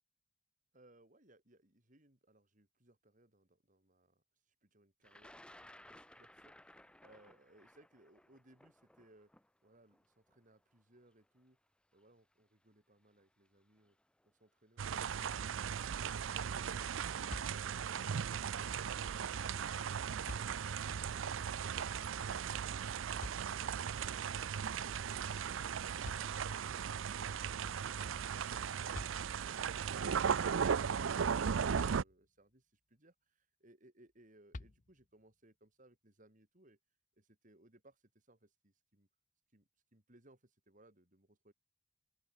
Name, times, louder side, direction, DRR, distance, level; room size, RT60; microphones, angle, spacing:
voice 1, 0.7-9.3 9.6-11.6 11.9-14.0 14.2-16.3 31.7-36.8 37.2-39.1 39.5-41.5, right 1 dB, 40° right, 4.4 m, -67 dB
Thunder, 5.0-11.1 12.0-12.1 13.2-13.5 13.8-14.3, left 1 dB, 5° left, 1.9 m, -60 dB
sound 1, 14.8-32.0, right 7 dB, 90° right, 0.5 m, -37 dB
sound 2, 31.7-32.6 34.5-35.3, left 2 dB, 40° left, 0.9 m, -50 dB
open air
head